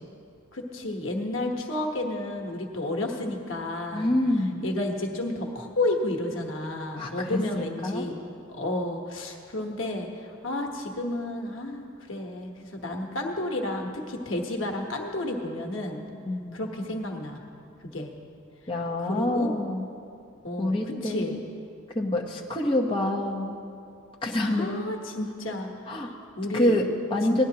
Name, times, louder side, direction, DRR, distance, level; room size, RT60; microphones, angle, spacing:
voice 1, 0.5-4.2 4.6-8.2 8.5-16.0 16.5-17.4 17.8-18.1 19.0-19.5 20.4-21.4 24.4-26.8 27.3-27.4, left 1 dB, 85° left, 1 dB, 1.2 m, -31 dB
voice 2, 3.9-4.6 7.0-8.1 16.3-16.7 18.7-19.8 20.6-21.3 21.9-23.6 24.2-24.7 25.9-26.1 26.5-27.4, left 1 dB, 25° left, -2 dB, 0.9 m, -26 dB
18.0 x 10.5 x 2.8 m, 2.5 s
head